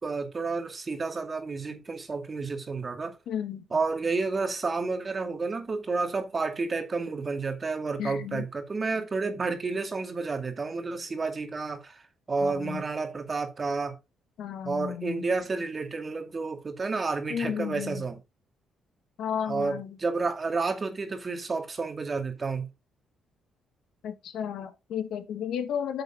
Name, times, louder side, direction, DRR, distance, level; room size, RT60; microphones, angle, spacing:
voice 1, 0.0-3.2 3.7-12.0 12.3-14.0 14.6-18.2 19.5-22.7, right 4 dB, 35° right, 2.1 m, -30 dB
voice 2, 3.3-3.6 8.0-8.4 12.4-12.8 14.4-15.3 17.3-18.0 19.2-20.0 24.0-26.0, left 8 dB, 75° left, 1.8 m, -33 dB
9.0 x 6.5 x 3.8 m
cardioid pair, 90°, 0 cm